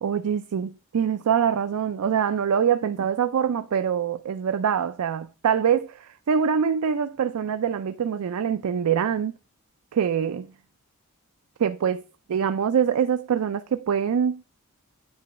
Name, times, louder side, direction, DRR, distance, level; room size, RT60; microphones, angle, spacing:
voice 1, 0.0-9.3 9.9-10.5 11.6-12.0 12.3-14.4, right 7 dB, 75° right, 0.4 m, -24 dB
8.7 x 3.1 x 5.7 m
head